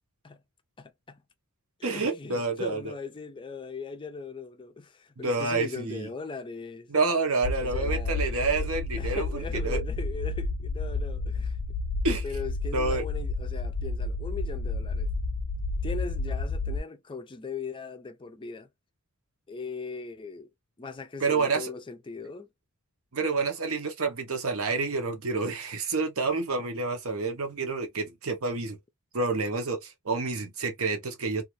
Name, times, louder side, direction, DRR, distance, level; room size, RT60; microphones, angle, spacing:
voice 1, 0.8-1.2 1.8-6.9 7.6-11.8 12.2-15.1 15.8-18.7 19.5-20.5 20.8-22.5, left 4 dB, 20° left, 0.4 m, -39 dB
voice 2, 1.8-2.9 5.2-6.1 6.9-9.3 9.6-9.8 12.0-12.2 12.7-13.0 21.2-21.7 23.1-28.8 29.1-31.4, right 3 dB, 65° right, 0.9 m, -28 dB
sound 1, 7.4-16.8, left 3 dB, 85° left, 0.5 m, -31 dB
2.5 x 2.4 x 2.9 m
head